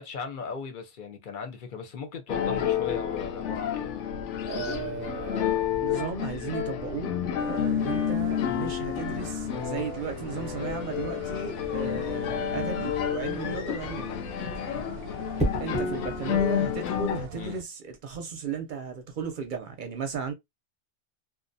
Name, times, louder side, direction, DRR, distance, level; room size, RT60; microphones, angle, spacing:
voice 1, 0.0-3.9 17.3-17.6, left 5 dB, 50° left, 0.7 m, -37 dB
sound 1, 2.3-17.3, left 9 dB, 85° left, 0.9 m, -30 dB
voice 2, 4.5-5.5 5.8-7.2 7.4-14.2 15.6-20.3, right 6 dB, 55° right, 0.6 m, -35 dB
sound 2, 7.4-17.6, right 7 dB, 85° right, 0.9 m, -45 dB
sound 3, 15.4-15.9 17.9-18.2, right 1 dB, 10° right, 0.5 m, -30 dB
2.5 x 2.1 x 2.6 m
omnidirectional pair, 1.2 m